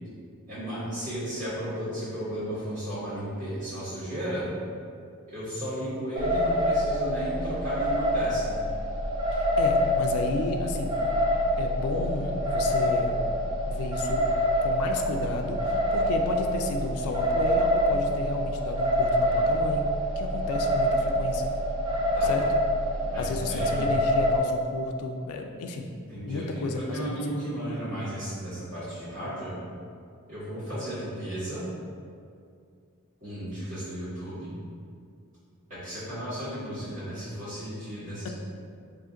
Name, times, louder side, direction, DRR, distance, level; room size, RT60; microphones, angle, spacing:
voice 1, 0.5-4.5 5.3-8.5 22.1-22.3 23.1-23.9 26.1-29.5 30.3-31.6 33.2-34.5 35.7-38.3, equal, 35° right, -14 dB, 1.3 m, -34 dB
sound 1, 6.1-24.4, equal, 20° right, 0.4 m, -26 dB
voice 2, 9.3-11.0 11.6-13.2 13.6-14.3 14.6-19.9 20.2-21.6 22.2-22.5 23.2-25.9 26.2-27.3, left 3 dB, 75° left, 3 dB, 0.3 m, -32 dB
2.5 x 2.5 x 3.7 m, 2.3 s
head